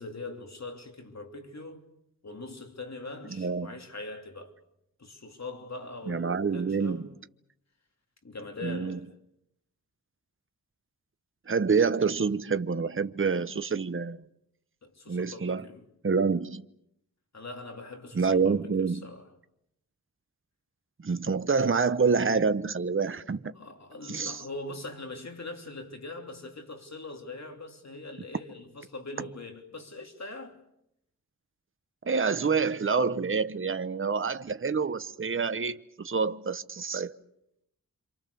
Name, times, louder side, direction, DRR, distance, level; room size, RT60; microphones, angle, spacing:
voice 1, 0.0-1.8 2.2-4.5 5.0-7.1 8.2-9.1 14.8-15.8 17.3-19.3 23.5-30.6, left 2 dB, 50° left, 3.2 m, -42 dB
voice 2, 3.3-3.8 6.1-7.1 8.6-9.0 11.5-14.2 15.1-15.6 16.0-16.6 18.1-19.0 21.0-23.5 24.1-24.4 32.0-37.2, right 5 dB, 40° right, 0.9 m, -27 dB
27.5 x 27.0 x 6.9 m
wide cardioid pair, 95°, 34 cm